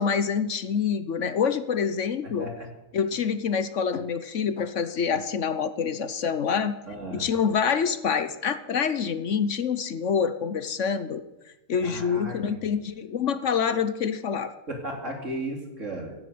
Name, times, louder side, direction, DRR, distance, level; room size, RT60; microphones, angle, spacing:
voice 1, 0.0-2.5 2.9-6.8 7.1-11.2 11.7-14.5, left 6 dB, 60° left, 12 dB, 1.2 m, -26 dB
voice 2, 6.9-7.3 11.8-12.5 14.7-16.2, right 1 dB, 60° right, 2 dB, 3.6 m, -35 dB
16.0 x 9.4 x 9.4 m, 0.97 s
omnidirectional pair, 1.5 m